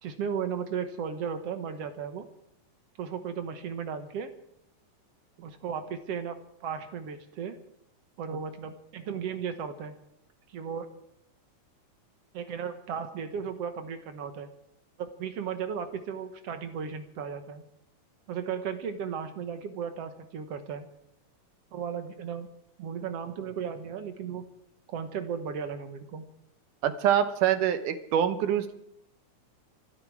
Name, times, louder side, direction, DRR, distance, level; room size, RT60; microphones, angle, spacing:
voice 1, 0.0-2.3 3.0-4.3 5.4-6.3 6.6-7.6 8.2-9.9 10.5-10.9 12.3-14.5 15.0-17.6 18.3-20.8 21.7-22.5 22.8-24.5 24.9-26.3, right 7 dB, 60° right, 8 dB, 1.9 m, -35 dB
voice 2, 26.8-28.7, right 10 dB, 85° right, 10 dB, 2.6 m, -25 dB
24.5 x 12.0 x 4.8 m, 0.77 s
omnidirectional pair, 3.6 m